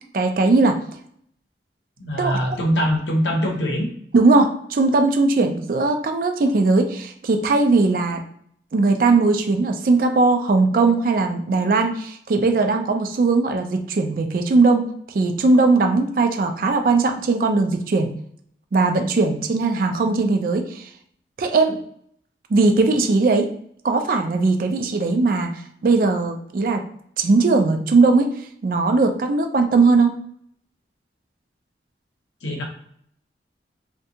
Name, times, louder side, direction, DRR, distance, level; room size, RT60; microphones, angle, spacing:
voice 1, 0.1-0.8 2.2-2.3 4.1-8.2 8.7-14.9 15.1-18.1 18.7-20.9 21.4-21.8 22.5-23.5 23.8-25.5 25.8-26.8 27.2-28.3 28.6-30.1, right 3 dB, 50° right, 6 dB, 0.3 m, -19 dB
voice 2, 2.0-3.9 32.4-32.6, equal, 80° left, 1 dB, 0.7 m, -22 dB
2.6 x 2.2 x 2.7 m, 0.67 s
head